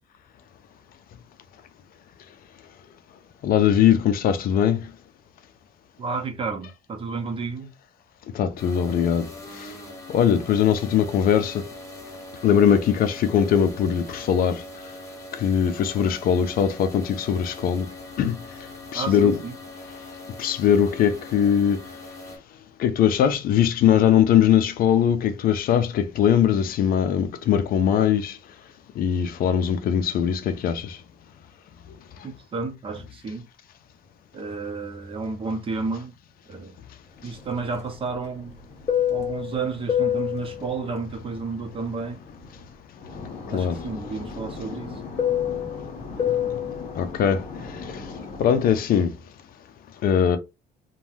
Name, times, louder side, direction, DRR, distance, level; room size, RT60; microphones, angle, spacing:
voice 1, 3.4-4.8 8.3-9.2 9.6-9.7 10.1-11.6 12.4-14.6 15.4-17.9 18.2-18.4 18.9-19.4 20.4-21.8 22.8-28.4 29.0-31.0 43.5-43.8 47.0-47.4 48.4-49.1 50.0-50.4, left 8 dB, 60° left, 0.5 m, -20 dB
voice 2, 6.0-7.7 18.9-19.6 32.2-33.5 34.3-36.2 36.5-36.8 37.2-38.6 39.1-42.2 43.5-45.0, right 4 dB, 30° right, 0.8 m, -31 dB
sound 1, 8.6-22.4, left 1 dB, 20° left, 1.1 m, -41 dB
Fixed-wing aircraft airplane, 37.3-42.6 43.0-48.8, left 9 dB, 40° left, 0.8 m, -29 dB
3.3 x 2.2 x 2.6 m
cardioid pair, 110°, 17 cm